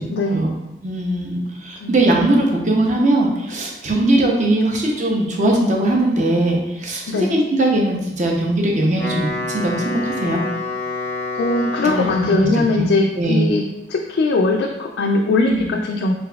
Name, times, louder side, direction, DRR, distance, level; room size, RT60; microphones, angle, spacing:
voice 1, 0.1-0.4 1.8-1.9 7.1-7.4 11.4-16.1, left 2 dB, 75° left, 1 dB, 0.3 m, -20 dB
voice 2, 0.8-10.4 11.8-12.5 12.8-12.9 13.2-13.5 15.5-15.7, right 1 dB, 40° right, 0 dB, 0.6 m, -20 dB
Wind instrument woodwind instrument, 8.8-12.7, left 2 dB, 10° left, 0.6 m, -27 dB
4.0 x 3.3 x 2.2 m, 0.94 s
head